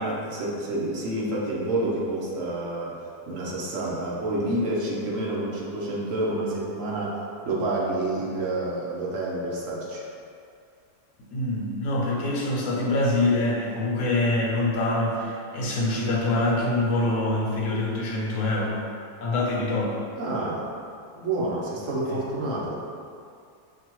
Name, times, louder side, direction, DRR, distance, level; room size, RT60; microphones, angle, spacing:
voice 1, 0.0-7.2 7.4-10.0 20.2-20.7 21.1-22.8, right 2 dB, 60° right, -4 dB, 1.0 m, -28 dB
voice 2, 11.3-18.8 19.2-20.1, left 2 dB, 65° left, -3 dB, 0.9 m, -25 dB
5.7 x 2.4 x 2.9 m, 2.4 s
omnidirectional pair, 1.7 m